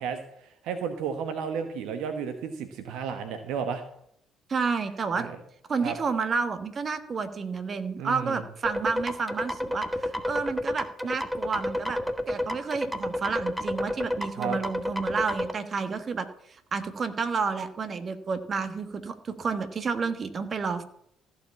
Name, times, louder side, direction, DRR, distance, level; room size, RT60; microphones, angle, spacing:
voice 1, 0.0-3.8 5.2-5.4 5.8-6.0 8.0-8.4 14.4-14.6, right 6 dB, 70° right, 8 dB, 1.1 m, -33 dB
voice 2, 4.5-5.3 5.7-12.0 12.3-16.3 16.7-20.8, right 5 dB, 40° right, 10 dB, 1.4 m, -30 dB
sound 1, 8.6-15.5, left 1 dB, 5° right, 1.5 m, -30 dB
15.0 x 5.1 x 8.3 m, 0.71 s
hypercardioid pair, 50°, 0 cm